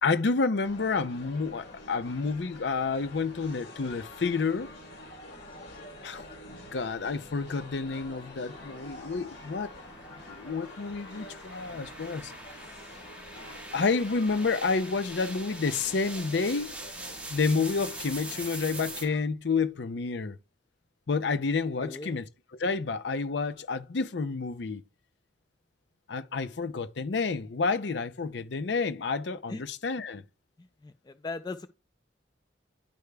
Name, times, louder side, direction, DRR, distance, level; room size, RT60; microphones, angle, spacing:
voice 1, 0.0-4.7 6.0-9.7 10.3-12.3 13.7-16.8 17.3-20.4 21.1-22.3 22.6-24.8 26.1-30.2, left 4 dB, 70° left, 0.6 m, -29 dB
sound 1, 0.6-19.2, left 1 dB, 90° left, 3.5 m, -47 dB
sound 2, 7.0-19.0, right 2 dB, 10° right, 1.3 m, -44 dB
voice 2, 21.8-22.2 29.5-29.6 30.6-31.7, left 3 dB, 20° left, 0.4 m, -39 dB
10.5 x 4.9 x 2.3 m
head